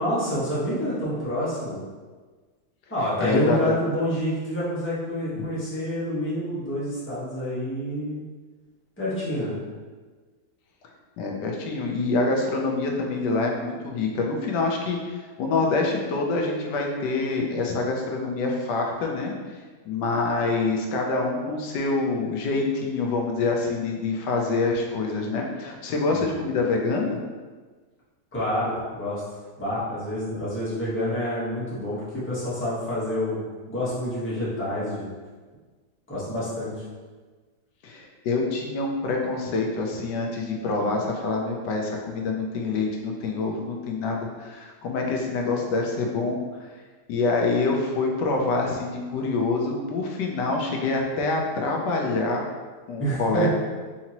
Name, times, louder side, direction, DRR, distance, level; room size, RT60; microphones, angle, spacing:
voice 1, 0.0-1.8 2.9-8.2 9.0-9.6 26.1-26.4 28.3-29.2 29.6-33.4 33.7-35.1 36.1-36.8 53.0-53.5, equal, 10° left, -10 dB, 1.1 m, -28 dB
voice 2, 3.2-3.8 5.3-5.5 11.2-19.3 19.9-27.2 37.8-46.7 47.1-52.5 52.9-53.5, left 3 dB, 90° left, 1 dB, 1.3 m, -26 dB
4.8 x 2.9 x 2.9 m, 1.4 s
omnidirectional pair, 1.8 m